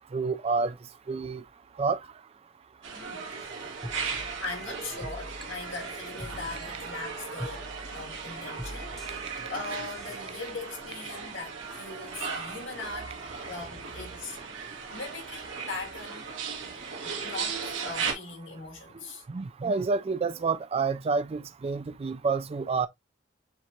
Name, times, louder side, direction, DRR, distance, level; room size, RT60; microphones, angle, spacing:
voice 1, 0.1-0.7 1.1-1.4 1.8-2.0 19.3-22.9, right 4 dB, 30° right, 0.4 m, -28 dB
sound 1, 2.8-18.1, right 5 dB, 90° right, 1.6 m, -37 dB
voice 2, 2.9-3.8 4.4-7.7 7.9-13.2 13.5-14.4 14.9-16.3 17.0-19.2, left 3 dB, 85° left, 2.4 m, -40 dB
sound 2, 3.8-10.2, equal, ahead, 0.8 m, -44 dB
7.1 x 2.5 x 3.0 m
head